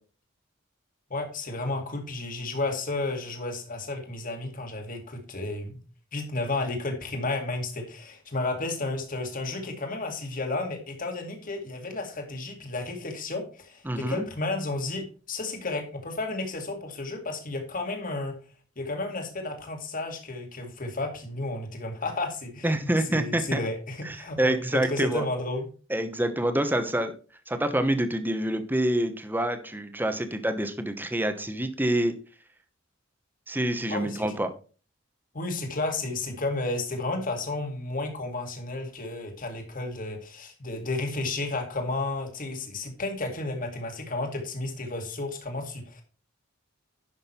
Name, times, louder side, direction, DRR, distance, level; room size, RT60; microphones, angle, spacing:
voice 1, 1.1-5.8 6.1-18.4 18.8-22.7 23.1-25.7 33.9-34.2 35.3-46.0, left 2 dB, 45° left, 4 dB, 2.2 m, -32 dB
voice 2, 13.8-14.2 22.6-23.6 24.0-25.2 25.9-27.1 27.5-32.1 33.5-34.5, right 1 dB, 10° right, 8 dB, 1.1 m, -27 dB
11.0 x 6.4 x 4.4 m, 0.37 s
head